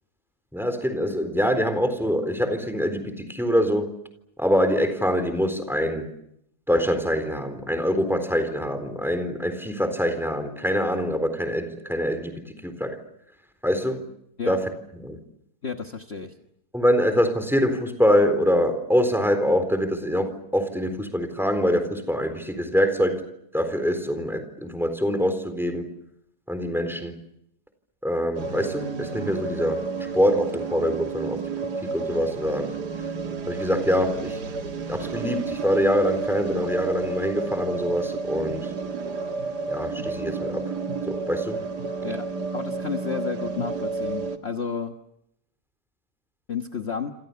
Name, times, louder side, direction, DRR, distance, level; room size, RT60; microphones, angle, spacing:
voice 1, 0.5-3.9 4.4-6.1 6.7-13.0 13.6-14.0 14.4-15.2 16.7-23.3 23.5-25.9 26.5-27.2 28.0-29.9 30.1-31.4 31.8-32.7 33.5-34.4 34.9-38.7 39.7-40.7 41.1-41.7, equal, ahead, 9 dB, 3.9 m, -24 dB
voice 2, 15.6-16.3 42.0-42.2 42.5-44.9 46.5-47.1, left 6 dB, 40° left, 5 dB, 1.6 m, -31 dB
sound 1, 28.4-44.4, right 4 dB, 85° right, 2.3 m, -31 dB
28.5 x 27.0 x 7.0 m, 0.77 s
omnidirectional pair, 1.7 m